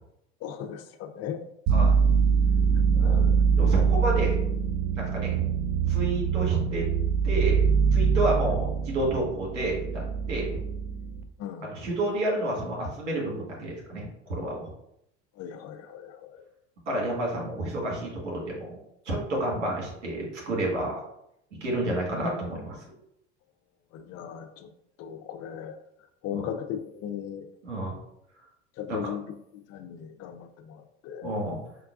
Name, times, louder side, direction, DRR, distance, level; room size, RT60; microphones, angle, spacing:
voice 1, 0.4-1.4 2.9-3.3 11.4-11.7 15.4-16.4 23.9-24.7 25.0-25.8 26.2-27.5 28.8-29.2 29.7-31.4, left 9 dB, 45° left, 7 dB, 0.5 m, -37 dB
sound 1, 1.7-11.2, right 6 dB, 40° right, 0.4 m, -24 dB
voice 2, 3.6-4.4 4.9-5.4 5.9-6.9 7.2-7.6 7.9-10.0 10.3-10.6 11.6-14.6 16.9-18.8 19.0-21.0 21.6-22.8 26.3-26.5 27.6-28.0 28.9-29.1 31.2-31.6, right 1 dB, 90° right, -2 dB, 1.4 m, -30 dB
5.2 x 2.2 x 2.4 m, 0.78 s
hypercardioid pair, 85°, 35 cm